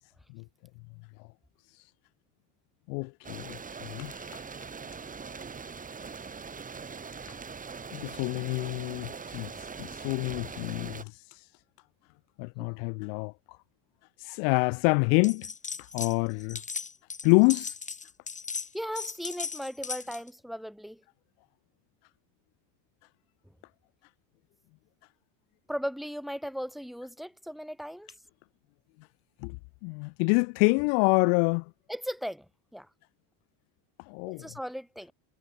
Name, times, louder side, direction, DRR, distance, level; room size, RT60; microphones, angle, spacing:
voice 1, 2.9-4.4 7.9-9.5 9.8-11.1 12.4-13.3 14.2-15.5 15.9-16.6 17.2-17.7 29.4-29.6 29.8-31.6 34.1-34.5, left 40 dB or more, 75° left, 0.7 m, -27 dB
sound 1, 3.2-11.0, right 5 dB, 15° right, 5.3 m, -42 dB
sound 2, 15.2-16.1 16.4-20.3, left 5 dB, 15° left, 4.8 m, -37 dB
voice 2, 18.7-21.0 25.7-28.1 31.9-32.4 32.7-32.9 34.3-35.1, equal, ahead, 4.8 m, -37 dB
cardioid pair, 160°, 46 cm